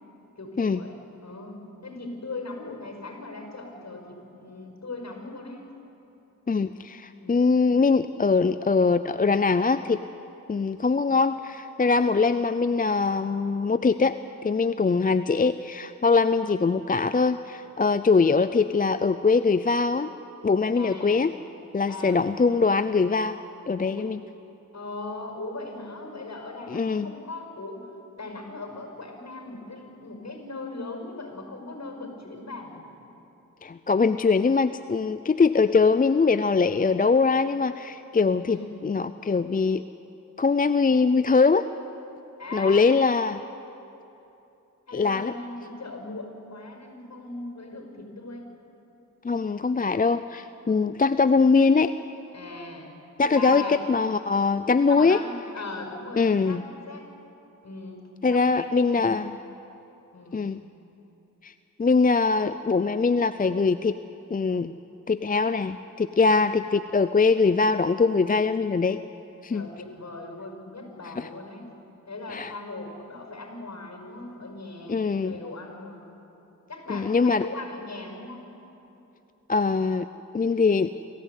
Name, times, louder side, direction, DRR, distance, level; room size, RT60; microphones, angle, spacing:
voice 1, 0.4-0.9 1.2-5.7 7.2-7.5 20.7-21.2 21.9-22.3 23.8-24.1 24.7-27.9 28.2-32.9 38.5-38.7 42.4-43.0 44.9-48.5 52.3-52.9 53.4-53.8 54.9-57.1 57.6-59.3 60.1-60.6 69.5-71.7 72.1-76.1 76.7-78.5, left 2 dB, 55° left, 3 dB, 5.3 m, -39 dB
voice 2, 6.5-10.0 10.5-14.2 14.4-20.1 20.4-21.3 21.7-23.4 23.7-24.2 26.7-27.1 33.6-38.6 38.8-39.8 40.4-41.7 42.5-43.4 44.9-45.3 49.2-51.9 53.2-55.2 56.2-56.6 58.2-59.3 60.3-60.6 61.4-61.5 61.8-64.0 64.3-64.7 65.1-69.0 69.4-69.7 71.2-71.3 72.3-72.5 74.9-75.3 76.9-77.5 79.5-80.1 80.3-80.9, left 4 dB, 25° left, 12 dB, 0.5 m, -22 dB
26.5 x 15.0 x 8.3 m, 2.9 s
cardioid pair, 55°, 32 cm